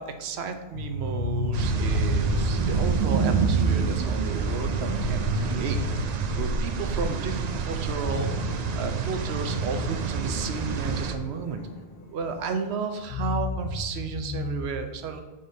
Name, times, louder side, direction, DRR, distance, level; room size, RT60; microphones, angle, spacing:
voice 1, 0.0-11.6 12.1-15.2, right 5 dB, 75° right, 7 dB, 0.9 m, -33 dB
sound 1, 0.7-7.2 7.5-7.6 7.9-12.5 13.0-14.6, left 2 dB, 65° left, 0.9 m, -32 dB
sound 2, 1.5-11.1, right 5 dB, 55° right, 0.4 m, -27 dB
7.5 x 5.2 x 2.7 m, 1.3 s
omnidirectional pair, 1.1 m